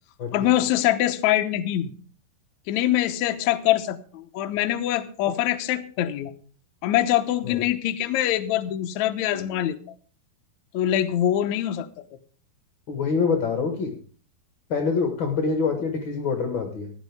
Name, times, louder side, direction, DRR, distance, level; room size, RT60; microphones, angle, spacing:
voice 1, 0.3-1.9 2.7-6.3 6.8-9.8 10.7-11.9, left 12 dB, 85° left, 7 dB, 1.6 m, -24 dB
voice 2, 12.9-13.9 14.7-16.9, left 5 dB, 50° left, 4 dB, 1.5 m, -25 dB
16.0 x 11.0 x 3.5 m, 0.41 s
omnidirectional pair, 4.6 m